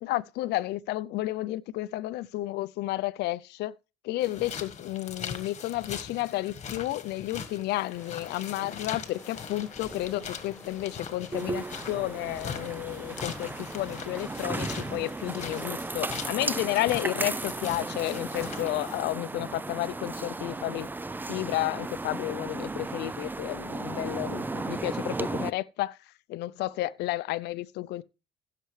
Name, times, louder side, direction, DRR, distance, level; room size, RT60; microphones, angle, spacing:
voice 1, 0.0-3.7 4.0-20.9 21.3-26.0 26.3-28.0, left 16 dB, 80° left, 0.6 m, -32 dB
sound 1, 4.2-19.0, left 7 dB, 40° left, 1.6 m, -41 dB
sound 2, 7.9-14.1, left 1 dB, 5° left, 3.5 m, -49 dB
sound 3, 11.3-25.5, right 3 dB, 10° right, 0.4 m, -35 dB
15.5 x 6.8 x 3.3 m
cardioid pair, 110°, 17 cm